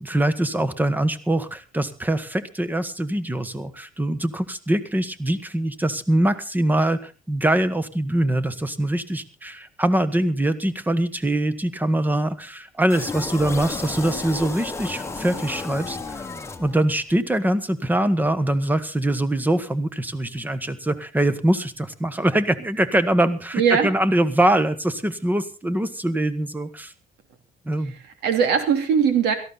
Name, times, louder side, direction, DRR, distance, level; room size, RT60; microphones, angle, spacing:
voice 1, 0.0-16.3 16.6-26.9 27.6-27.9, right 1 dB, 10° right, 14 dB, 1.4 m, -23 dB
sound 1, 12.9-17.1, left 3 dB, 15° left, 1.4 m, -33 dB
voice 2, 23.5-23.9 27.8-29.3, right 7 dB, 85° right, 8 dB, 3.0 m, -20 dB
17.5 x 14.0 x 4.1 m, 0.33 s
cardioid pair, 110°, 17 cm